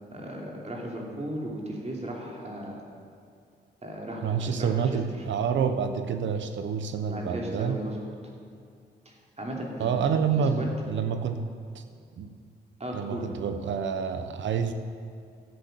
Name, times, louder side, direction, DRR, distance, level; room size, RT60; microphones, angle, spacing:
voice 1, 0.1-2.8 3.8-4.8 7.0-8.1 9.0-10.7 12.8-13.2, right 1 dB, 35° right, -1 dB, 3.1 m, -36 dB
voice 2, 4.2-7.8 9.8-11.5 11.7-11.8 12.2-12.3 12.9-14.7, right 6 dB, 80° right, 9 dB, 1.0 m, -28 dB
13.0 x 8.2 x 7.8 m, 2.3 s
cardioid pair, 70°, 19 cm